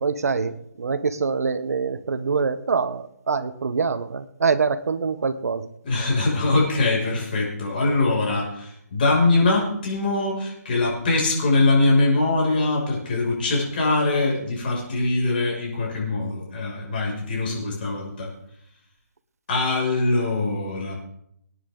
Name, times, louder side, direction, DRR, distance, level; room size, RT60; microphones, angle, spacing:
voice 1, 0.0-5.7, right 5 dB, 60° right, 11 dB, 1.2 m, -25 dB
voice 2, 5.8-18.3 19.5-20.9, left 2 dB, 35° left, -2 dB, 6.3 m, -22 dB
26.5 x 9.8 x 3.9 m, 0.76 s
hypercardioid pair, 170°, 9 cm